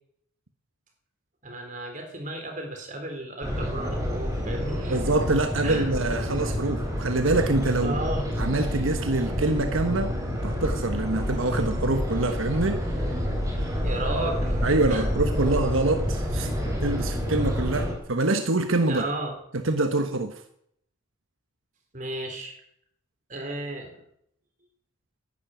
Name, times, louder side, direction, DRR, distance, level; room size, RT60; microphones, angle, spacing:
voice 1, 1.4-5.0 5.6-5.9 7.8-8.3 13.8-14.6 14.9-15.0 18.9-19.3 21.9-22.6 23.3-23.9, right 1 dB, 40° right, 3 dB, 3.9 m, -33 dB
sound 1, 3.4-17.9, equal, 15° right, 4.8 m, -28 dB
voice 2, 4.9-8.0 8.4-10.2 10.4-12.9 14.6-16.5 16.8-19.0 19.5-20.4, right 2 dB, 85° right, 7 dB, 1.3 m, -25 dB
11.5 x 11.0 x 9.3 m, 0.72 s
head